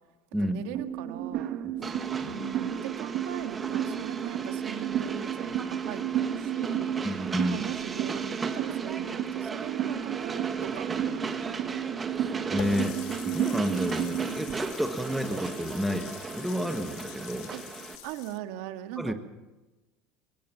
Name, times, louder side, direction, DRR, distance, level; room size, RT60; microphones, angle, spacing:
voice 1, 0.4-1.5 1.8-7.0 7.5-11.5 17.5-17.6 18.0-19.1, right 10 dB, 70° right, 7 dB, 1.9 m, -40 dB
sound 1, 0.7-14.5, right 10 dB, 50° right, 2.1 m, -32 dB
Train, 1.8-18.0, right 4 dB, 20° right, 1.7 m, -37 dB
voice 2, 7.0-7.6 12.2-13.0 13.3-17.5 19.0-19.1, equal, ahead, 6 dB, 1.6 m, -30 dB
Water tap faucet, 12.6-18.4, left 11 dB, 65° left, 1.9 m, -44 dB
23.5 x 17.5 x 7.2 m, 1.1 s
supercardioid pair, 130°, 0 cm